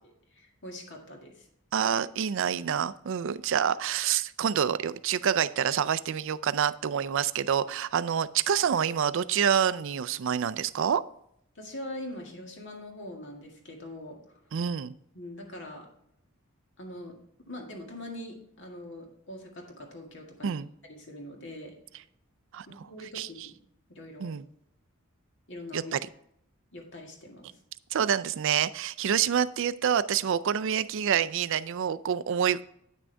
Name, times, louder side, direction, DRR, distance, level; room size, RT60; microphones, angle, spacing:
voice 1, 0.3-1.5 11.6-14.4 15.1-15.9 16.8-17.1 17.5-20.6 20.9-21.7 22.7-23.6 23.9-24.3 25.5-25.9 26.7-27.6, left 1 dB, 60° left, 1 dB, 1.9 m, -43 dB
voice 2, 1.7-11.0 14.5-14.9 20.4-20.7 22.5-22.9 23.1-23.5 24.2-24.4 25.7-26.0 27.9-32.6, right 8 dB, 60° right, 15 dB, 0.4 m, -27 dB
9.2 x 6.2 x 3.4 m, 0.72 s
head